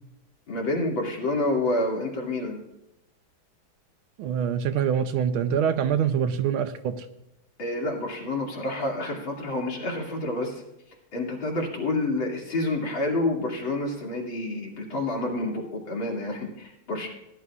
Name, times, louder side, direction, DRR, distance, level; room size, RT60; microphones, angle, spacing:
voice 1, 0.5-2.6 7.6-10.6 11.1-17.1, left 2 dB, 70° left, -2 dB, 3.3 m, -28 dB
voice 2, 4.2-7.1, right 8 dB, 80° right, 9 dB, 1.6 m, -25 dB
19.5 x 11.0 x 2.4 m, 0.86 s
omnidirectional pair, 2.3 m